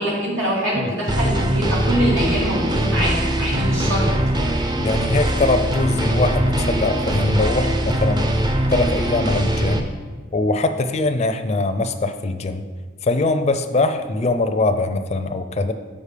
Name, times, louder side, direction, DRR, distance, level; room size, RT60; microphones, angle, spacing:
voice 1, 0.0-4.1, equal, 85° right, -4 dB, 2.3 m, -23 dB
sound 1, 1.1-9.8, right 1 dB, 25° right, 0.5 m, -21 dB
voice 2, 4.8-8.3 8.7-9.9 10.3-12.6 13.0-15.7, left 2 dB, 35° left, 8 dB, 0.4 m, -22 dB
6.6 x 5.2 x 5.0 m, 1.4 s
head